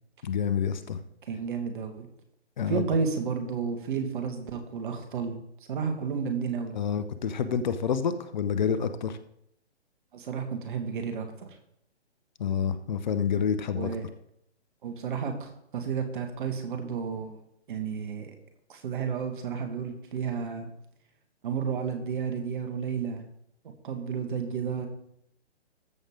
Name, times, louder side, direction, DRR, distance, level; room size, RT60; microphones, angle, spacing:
voice 1, 0.2-1.0 2.6-2.8 6.7-9.2 12.4-13.9, left 7 dB, 40° left, 12 dB, 0.7 m, -28 dB
voice 2, 1.3-2.1 2.7-5.4 5.7-6.8 10.1-11.5 13.7-14.0 14.8-17.4 17.7-18.3 18.7-20.7 21.4-23.2 23.8-24.9, right 6 dB, 45° right, 6 dB, 1.8 m, -32 dB
14.0 x 6.4 x 3.8 m, 0.74 s
figure-of-eight pair, 135°, 34 cm